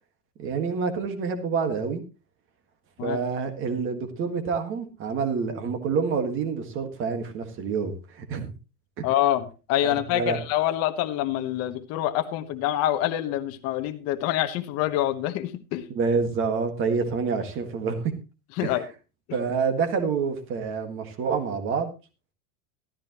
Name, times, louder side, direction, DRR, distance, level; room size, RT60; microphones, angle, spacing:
voice 1, 0.4-2.0 3.0-8.5 9.0-9.1 9.8-10.4 15.9-18.1 18.6-18.7 19.3-21.9, right 5 dB, 25° right, 7 dB, 1.7 m, -27 dB
voice 2, 9.0-15.9 18.6-18.8, left 13 dB, 30° left, 8 dB, 1.1 m, -26 dB
14.0 x 13.0 x 3.0 m, 0.30 s
supercardioid pair, 165°, 47 cm